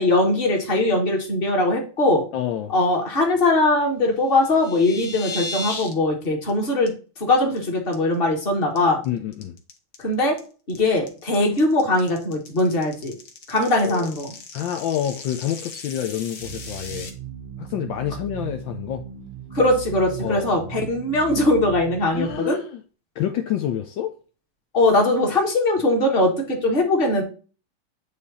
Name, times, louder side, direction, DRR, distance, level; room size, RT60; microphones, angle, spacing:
voice 1, 0.0-2.3 2.7-6.9 7.2-9.0 10.0-10.4 10.7-13.2 13.5-14.3 19.5-22.6 24.7-27.2, left 2 dB, 30° left, 1 dB, 1.6 m, -21 dB
voice 2, 2.3-2.7 9.0-9.5 13.8-14.1 14.5-17.1 17.6-19.0 20.2-20.7 22.1-22.8 23.2-24.1, left 10 dB, 75° left, 6 dB, 1.3 m, -28 dB
sound 1, 4.3-5.9 6.2-6.5 6.9-7.0 7.3-7.6 7.9-8.4 8.8-17.1, left 3 dB, 55° left, 1.7 m, -36 dB
sound 2, 16.4-22.4, right 9 dB, 90° right, 1.7 m, -37 dB
8.9 x 3.4 x 4.1 m, 0.37 s
omnidirectional pair, 2.3 m